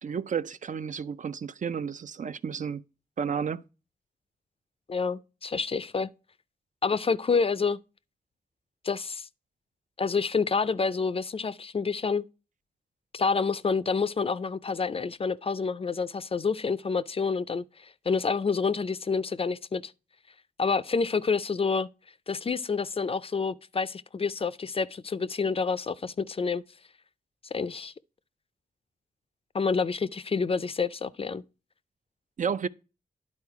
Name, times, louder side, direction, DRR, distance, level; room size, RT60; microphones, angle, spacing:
voice 1, 0.0-2.8 3.2-3.6 32.4-32.7, right 6 dB, 50° right, 0.4 m, -31 dB
voice 2, 4.9-6.1 6.8-7.8 8.8-9.3 10.0-12.2 13.1-19.9 20.6-21.9 22.3-26.6 27.5-27.9 29.5-31.4, left 5 dB, 35° left, 0.4 m, -28 dB
9.9 x 4.2 x 4.7 m
cardioid pair, 65°, 16 cm